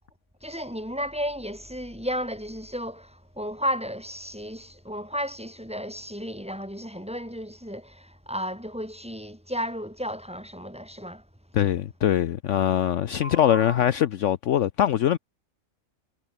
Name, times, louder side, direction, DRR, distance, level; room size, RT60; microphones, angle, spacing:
voice 1, 0.4-11.2 13.2-13.8, equal, 5° right, 4.6 m, -33 dB
voice 2, 11.5-15.2, left 11 dB, 65° left, 1.0 m, -22 dB
omnidirectional pair, 1.4 m